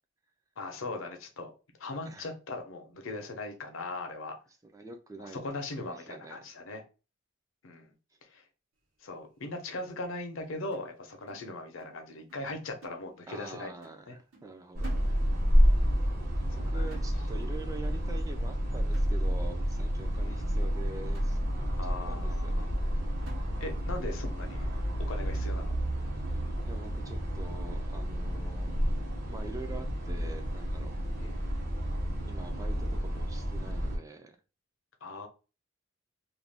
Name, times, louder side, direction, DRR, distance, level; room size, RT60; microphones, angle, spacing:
voice 1, 0.6-1.5 1.8-4.3 5.2-6.8 7.6-7.9 8.3-8.4 9.0-13.7 14.1-14.2 14.9-15.2 16.5-16.8 20.2-20.5 21.8-22.7 23.6-24.7 25.1-25.7 31.2-31.5 35.0-35.3, left 2 dB, 70° left, 4 dB, 0.6 m, -39 dB
voice 2, 4.6-5.4 5.8-6.4 13.3-14.9 16.4-22.7 26.7-28.7 29.3-30.9 32.2-34.4, right 2 dB, 15° right, 6 dB, 0.3 m, -45 dB
sound 1, 10.7-12.0 12.3-12.5 12.8-13.5 13.8-14.1 14.3-15.6 15.9-16.1 16.4-16.7 16.9-17.6 17.9-18.2 18.5-18.6 18.9-19.6 20.1-20.2 20.6-20.7 21.1-21.8 22.2-22.3 22.8-22.9 23.3-24.0 24.3-24.4 24.8-25.0 25.3-25.9 26.4-26.5 26.8-27.1, right 2 dB, 75° right, 1.0 m, -55 dB
sound 2, 14.7-34.0, equal, 45° right, 1.0 m, -30 dB
2.5 x 2.2 x 3.3 m, 0.33 s
head